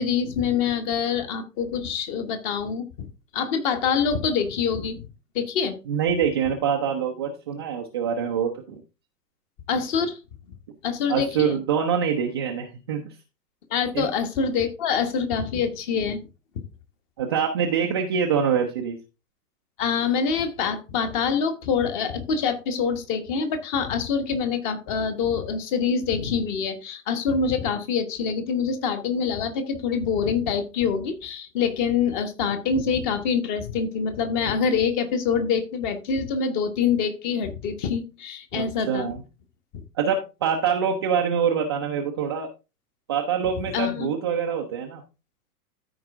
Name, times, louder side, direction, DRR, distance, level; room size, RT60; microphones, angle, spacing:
voice 1, 0.0-3.1 3.3-5.1 5.3-5.8 9.7-10.2 10.8-11.6 13.7-16.2 19.8-39.1 43.7-44.1, left 6 dB, 30° left, 8 dB, 1.3 m, -25 dB
voice 2, 5.9-8.8 11.1-13.2 13.9-14.1 17.2-19.0 38.5-39.2 40.0-42.5 43.1-45.0, right 7 dB, 15° right, 1 dB, 0.4 m, -25 dB
13.5 x 4.6 x 3.5 m, 0.29 s
figure-of-eight pair, 110°, 48 cm